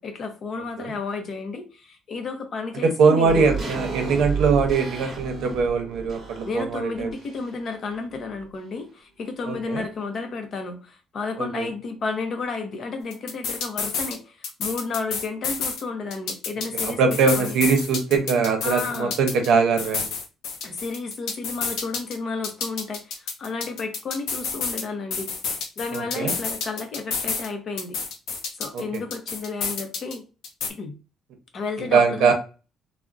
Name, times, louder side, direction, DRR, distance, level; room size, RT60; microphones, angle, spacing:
voice 1, 0.0-3.5 6.5-17.6 18.6-19.2 20.6-25.3 25.8-28.0 28.6-30.2 30.7-30.9 31.5-32.3, left 4 dB, 40° left, 0.6 m, -32 dB
voice 2, 2.8-7.1 9.5-9.8 11.4-11.7 16.8-20.1 25.9-26.3 28.7-28.8 31.9-32.3, right 5 dB, 70° right, 0.7 m, -21 dB
sound 1, 3.2-7.7 8.0-8.1, right 5 dB, 25° right, 1.0 m, -32 dB
sound 2, 13.1-14.2 14.4-15.8 16.1-19.5 19.8-22.2 22.4-24.8 25.1-27.5 27.8-30.2 30.4-30.7, left 5 dB, 85° left, 0.6 m, -29 dB
3.5 x 2.0 x 2.4 m
cardioid pair, 165°, 0 cm